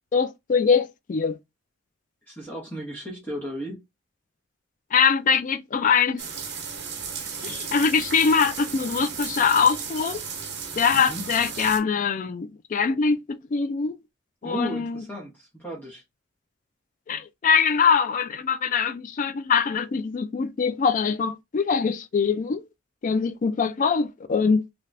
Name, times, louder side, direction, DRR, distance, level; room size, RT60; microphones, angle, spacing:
voice 1, 0.1-1.4 4.9-6.2 7.4-10.2 10.8-14.0 14.4-15.0 17.1-22.6 23.0-24.6, left 6 dB, 45° left, 0.4 m, -23 dB
voice 2, 2.3-3.8 10.9-11.2 14.4-16.0, equal, 10° left, 0.9 m, -34 dB
sound 1, 6.2-11.8, right 6 dB, 60° right, 0.9 m, -35 dB
3.3 x 2.9 x 2.5 m
head